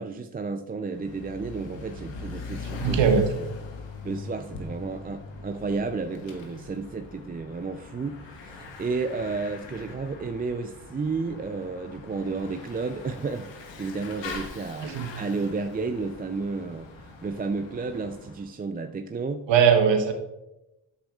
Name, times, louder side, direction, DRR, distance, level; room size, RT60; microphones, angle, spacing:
voice 1, 0.0-3.0 3.3-3.5 4.0-19.5, right 4 dB, 20° right, 7 dB, 0.4 m, -32 dB
Bicycle / Mechanisms, 0.9-18.5, left 3 dB, 85° left, 1.1 m, -41 dB
voice 2, 2.8-3.3 14.8-15.1 19.5-20.1, right 7 dB, 85° right, 5 dB, 1.0 m, -20 dB
8.6 x 7.1 x 2.4 m, 0.95 s
supercardioid pair, 40°, 43 cm